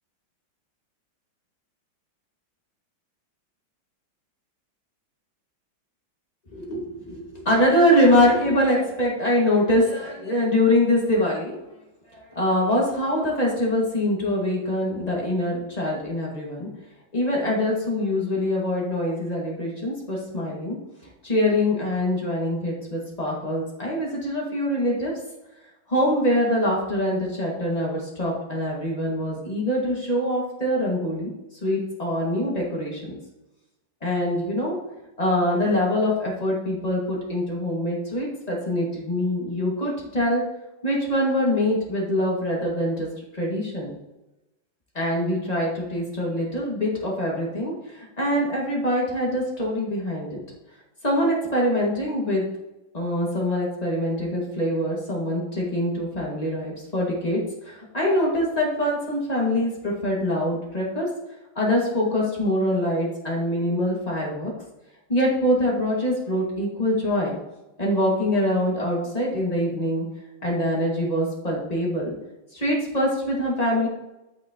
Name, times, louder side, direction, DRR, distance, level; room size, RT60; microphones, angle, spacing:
voice 1, 6.5-11.6 12.1-16.7 17.1-20.8 21.2-25.1 25.9-31.3 31.6-33.2 34.0-34.7 35.2-40.4 40.8-43.1 43.3-43.9 44.9-50.4 51.0-52.4 52.9-61.1 61.6-64.5 65.1-67.4 67.8-70.0 70.4-72.1 72.5-73.9, left 1 dB, 20° left, -4 dB, 2.3 m, -24 dB
13.0 x 6.0 x 3.1 m, 0.98 s
omnidirectional pair, 2.2 m